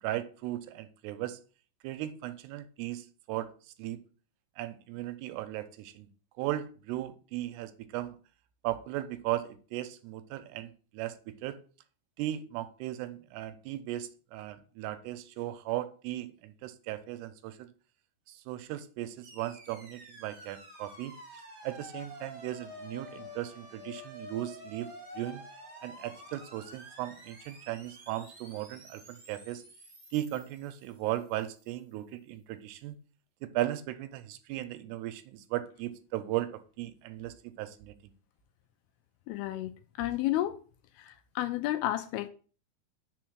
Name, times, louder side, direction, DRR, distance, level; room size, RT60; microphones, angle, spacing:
voice 1, 0.0-1.4 1.8-3.5 3.8-4.0 4.6-6.1 6.4-8.2 8.6-11.1 11.4-11.6 12.2-17.7 18.3-24.9 25.1-25.4 25.8-29.6 30.1-33.0 33.4-38.1, right 14 dB, 85° right, 2.6 m, -37 dB
sound 1, 19.2-31.5, equal, 30° right, 1.4 m, -49 dB
voice 2, 39.3-40.6 41.0-42.3, left 14 dB, 85° left, 2.3 m, -32 dB
5.7 x 4.2 x 6.2 m
omnidirectional pair, 4.8 m